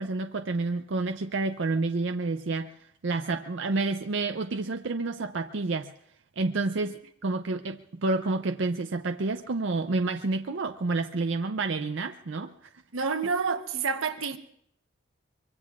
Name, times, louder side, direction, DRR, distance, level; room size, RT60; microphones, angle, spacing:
voice 1, 0.0-2.7 3.0-5.9 6.4-12.7, right 3 dB, 60° right, 0.5 m, -29 dB
voice 2, 12.9-14.4, right 5 dB, 90° right, 1.0 m, -28 dB
24.0 x 23.5 x 2.4 m
head